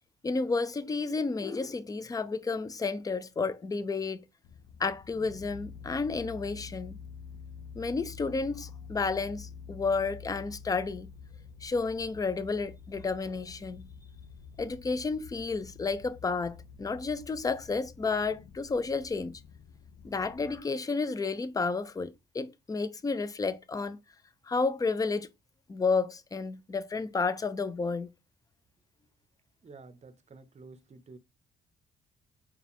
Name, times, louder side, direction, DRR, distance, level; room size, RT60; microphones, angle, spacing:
voice 1, 0.2-4.2 4.8-7.0 7.8-11.1 11.6-13.9 14.6-19.4 20.0-24.0 24.4-25.3 25.7-28.1, left 4 dB, 20° left, 0.4 m, -31 dB
sound 1, 4.4-20.6, left 6 dB, 90° left, 0.5 m, -48 dB
voice 2, 29.6-31.2, right 3 dB, 35° right, 0.7 m, -51 dB
4.6 x 2.3 x 3.5 m
cardioid pair, 90°, 20 cm